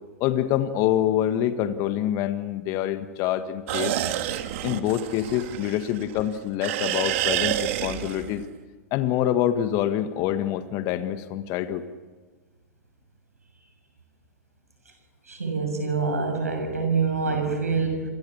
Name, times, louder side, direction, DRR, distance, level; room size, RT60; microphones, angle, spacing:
voice 1, 0.2-3.9 4.6-8.4 8.9-11.8, left 11 dB, 45° left, 9 dB, 1.7 m, -26 dB
sound 1, 3.7-6.2 6.6-8.4, right 12 dB, 55° right, 2.0 m, -28 dB
voice 2, 15.3-18.0, right 4 dB, 90° right, 6 dB, 6.8 m, -25 dB
29.0 x 23.5 x 7.2 m, 1.3 s
hypercardioid pair, 105°, 8 cm